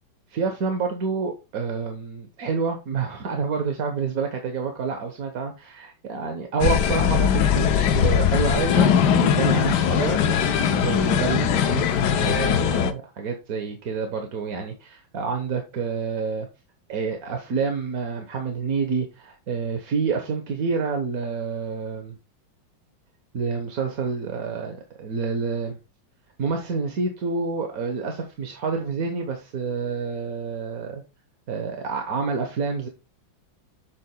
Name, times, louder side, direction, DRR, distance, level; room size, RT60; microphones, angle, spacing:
voice 1, 0.3-11.8 12.1-16.5 16.9-22.2 23.3-25.8 26.4-31.0 31.5-32.9, right 5 dB, 50° right, 1.4 m, -28 dB
sound 1, 6.6-12.9, left 8 dB, 65° left, 1.2 m, -20 dB
8.2 x 7.5 x 2.2 m
omnidirectional pair, 2.2 m